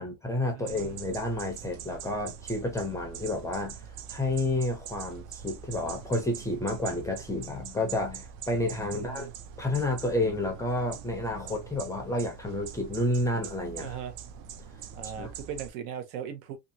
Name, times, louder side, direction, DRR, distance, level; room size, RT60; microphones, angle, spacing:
voice 1, 0.0-3.8 4.1-9.3 9.6-14.0 15.2-15.3, left 1 dB, 5° left, 0.4 m, -30 dB
sound 1, 0.6-15.7, right 8 dB, 55° right, 0.5 m, -44 dB
voice 2, 0.6-1.0 8.9-9.3 13.8-14.1 14.9-16.6, right 8 dB, 80° right, 0.9 m, -39 dB
2.7 x 2.4 x 2.6 m
cardioid pair, 145°, 46 cm